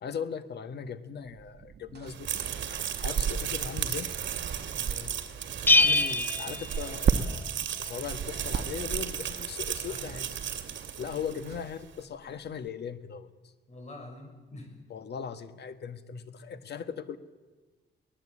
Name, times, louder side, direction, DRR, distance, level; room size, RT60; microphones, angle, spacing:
voice 1, 0.0-2.3 3.0-4.1 5.7-7.5 7.8-10.4 11.0-13.3 14.9-17.2, left 7 dB, 65° left, 11 dB, 1.6 m, -38 dB
sound 1, 1.3-11.7, right 7 dB, 65° right, 1.2 m, -35 dB
sound 2, 2.1-11.6, right 9 dB, 80° right, 2.5 m, -35 dB
voice 2, 4.7-5.1 9.9-10.2 13.7-14.8, left 1 dB, 35° left, 3 dB, 6.3 m, -46 dB
Bell, 5.7-7.5, left 3 dB, 10° left, 0.6 m, -24 dB
24.0 x 18.5 x 8.6 m, 1.3 s
wide cardioid pair, 135°, 19 cm